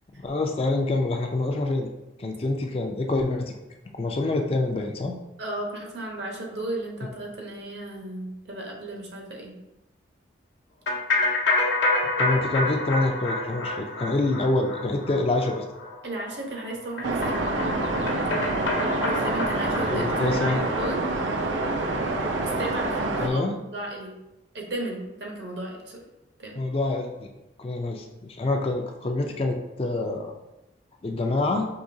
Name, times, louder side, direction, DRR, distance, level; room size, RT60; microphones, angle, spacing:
voice 1, 0.2-1.9 2.2-3.5 3.9-5.2 12.2-15.6 19.9-20.6 23.2-23.6 26.6-27.3 27.6-30.3 31.0-31.7, left 2 dB, 30° left, 3 dB, 0.3 m, -26 dB
voice 2, 5.4-9.6 16.0-17.4 19.0-21.0 22.6-24.1 24.5-26.0 26.4-26.6, right 2 dB, 65° right, 0 dB, 0.9 m, -34 dB
sound 1, 10.9-20.9, left 2 dB, 80° left, 0.7 m, -28 dB
sound 2, 17.0-23.3, right 2 dB, 80° right, 0.5 m, -27 dB
4.9 x 3.0 x 2.6 m, 0.97 s
head